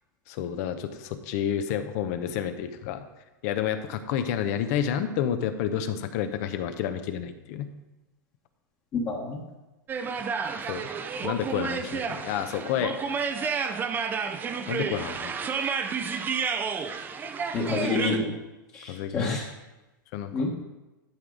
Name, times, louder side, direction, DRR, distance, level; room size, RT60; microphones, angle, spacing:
voice 1, 0.3-3.1 3.4-7.7 10.6-10.9 11.2-12.9 14.7-15.3 15.6-15.7 18.9-19.4 20.1-20.5, left 9 dB, 50° left, 10 dB, 0.8 m, -30 dB
voice 2, 8.9-9.4 17.5-18.3 18.7-19.4 20.3-20.5, left 3 dB, 30° left, -3 dB, 1.4 m, -28 dB
sound 1, 9.9-18.2, right 6 dB, 20° right, 0.5 m, -31 dB
11.5 x 4.8 x 3.9 m, 1.0 s
supercardioid pair, 140°, 11 cm